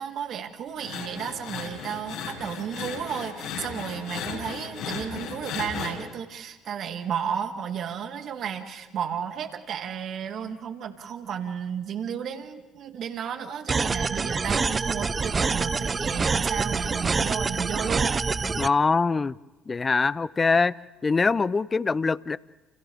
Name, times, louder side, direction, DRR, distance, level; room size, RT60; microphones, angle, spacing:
voice 1, 0.0-18.2, right 8 dB, 55° right, 6 dB, 2.3 m, -33 dB
sound 1, 0.8-5.9, left 6 dB, 70° left, 6.2 m, -35 dB
sound 2, 13.7-18.7, right 4 dB, 30° right, 0.6 m, -26 dB
voice 2, 18.6-19.4 19.7-20.7 21.0-22.4, left 4 dB, 30° left, 20 dB, 0.6 m, -23 dB
29.5 x 29.5 x 3.6 m, 1.1 s
hypercardioid pair, 60°, 0 cm